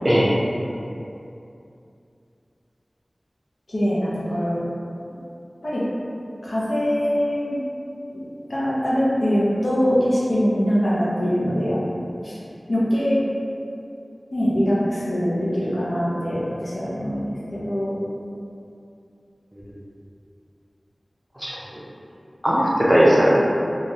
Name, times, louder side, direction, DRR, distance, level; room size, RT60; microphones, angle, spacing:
voice 1, 3.7-4.6 5.6-5.8 6.4-7.6 8.1-8.2 8.5-11.8 12.2-12.4 12.7-13.2 14.3-18.0, equal, 70° left, -8 dB, 0.7 m, -23 dB
voice 2, 21.4-21.8 22.4-23.3, equal, 10° right, -7 dB, 0.5 m, -18 dB
3.0 x 2.3 x 2.7 m, 2.6 s
wide cardioid pair, 45°, 0 cm